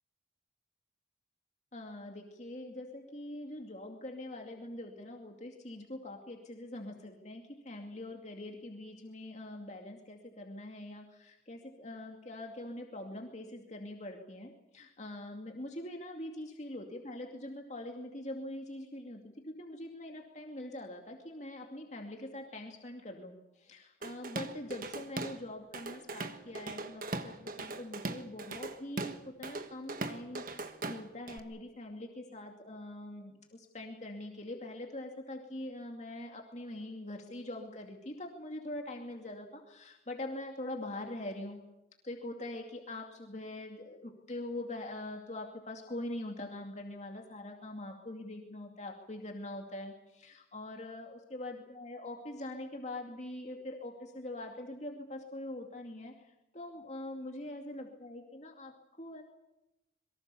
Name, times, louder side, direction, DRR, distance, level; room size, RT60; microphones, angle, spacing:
voice 1, 1.7-41.6 42.0-59.2, left 1 dB, 40° left, 1 dB, 2.5 m, -43 dB
Drum kit / Drum, 24.0-25.4 25.7-31.4, right 3 dB, 50° right, 1.5 m, -40 dB
25.0 x 23.0 x 7.0 m, 0.93 s
head